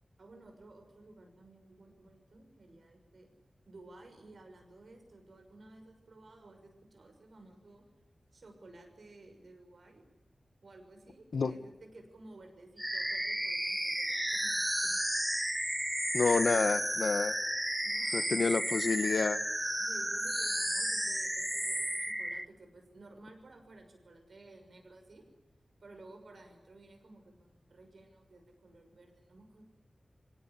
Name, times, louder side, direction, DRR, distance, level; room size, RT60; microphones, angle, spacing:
voice 1, 0.2-3.3 3.7-7.9 8.3-10.0 10.6-15.0 17.8-18.4 19.8-25.2 25.8-29.7, right 2 dB, 75° right, 4 dB, 6.1 m, -55 dB
sound 1, 12.8-22.4, right 1 dB, 10° right, 0.8 m, -33 dB
voice 2, 16.1-17.4 18.1-19.4, left 4 dB, 90° left, 14 dB, 1.1 m, -29 dB
24.0 x 17.5 x 10.0 m, 1.1 s
wide cardioid pair, 70°, 0 cm